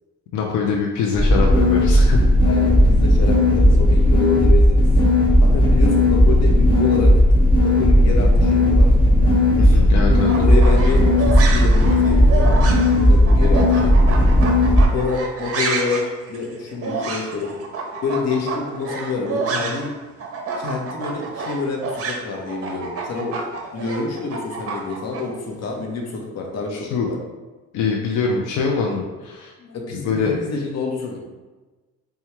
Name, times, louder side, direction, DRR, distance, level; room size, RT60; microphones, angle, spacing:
voice 1, 0.3-2.2 9.6-10.3 26.7-27.1 27.7-29.5 29.9-30.3, left 5 dB, 90° left, -1 dB, 0.5 m, -23 dB
sound 1, 1.1-14.8, left 1 dB, 15° left, 1.3 m, -15 dB
voice 2, 2.4-4.9 5.4-7.1 7.6-8.9 9.6-9.8 10.4-12.5 13.1-14.2 14.9-16.0 16.3-17.5 18.0-19.9 20.6-23.4 23.7-27.2 29.6-31.2, left 4 dB, 60° left, 1 dB, 0.8 m, -27 dB
sound 2, 10.2-19.9 20.2-25.2, right 4 dB, 50° right, 0.6 m, -29 dB
4.5 x 2.3 x 2.9 m, 1.2 s
cardioid pair, 90°, 30 cm